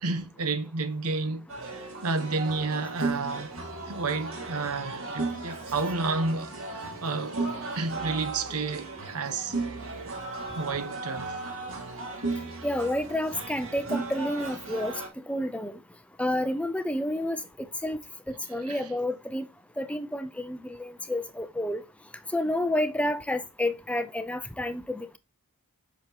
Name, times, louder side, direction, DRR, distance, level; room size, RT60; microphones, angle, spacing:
voice 1, 0.0-1.5 2.0-3.5 3.9-9.6 10.6-11.4 18.7-18.8, right 3 dB, 80° right, 1.0 m, -31 dB
sound 1, 1.5-15.1, right 3 dB, 60° right, 2.3 m, -35 dB
voice 2, 12.6-14.9 15.3-15.8 16.2-17.4 17.8-18.0 18.3-19.5 19.8-21.8 22.3-25.2, left 1 dB, 5° left, 0.7 m, -29 dB
8.3 x 6.2 x 3.0 m
head